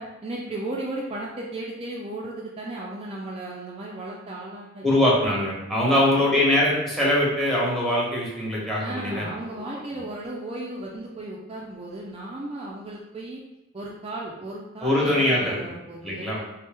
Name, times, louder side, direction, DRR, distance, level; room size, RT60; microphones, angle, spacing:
voice 1, 0.0-4.8 5.9-6.4 8.8-13.4 13.7-16.4, right 2 dB, 30° right, -3 dB, 0.4 m, -35 dB
voice 2, 4.8-9.6 14.8-15.7 16.0-16.4, left 1 dB, ahead, -4 dB, 1.0 m, -22 dB
3.2 x 3.1 x 3.4 m, 1.0 s
head